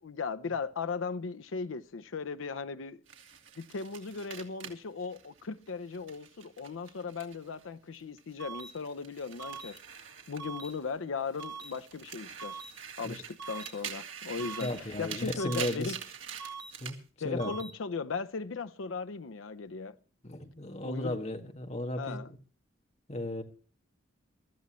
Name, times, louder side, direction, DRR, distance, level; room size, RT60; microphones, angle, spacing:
voice 1, 0.0-3.0 3.6-10.0 10.3-12.6 13.0-16.0 17.2-20.0 20.8-21.2 22.0-22.3, left 4 dB, 85° left, 0.6 m, -37 dB
sound 1, 3.1-7.6 7.9-10.9 11.3-17.0, right 8 dB, 85° right, 2.6 m, -45 dB
sound 2, 8.4-8.7 9.4-9.7 10.4-10.7 11.4-11.7 12.4-12.7 13.4-13.7 14.4-14.7 15.4-15.7 16.4-16.7 17.4-17.7, right 5 dB, 60° right, 1.8 m, -42 dB
voice 2, 14.6-15.9 16.8-17.0 17.2-17.5 20.2-22.2 23.1-23.4, left 1 dB, 35° left, 1.8 m, -35 dB
22.5 x 13.5 x 3.0 m
head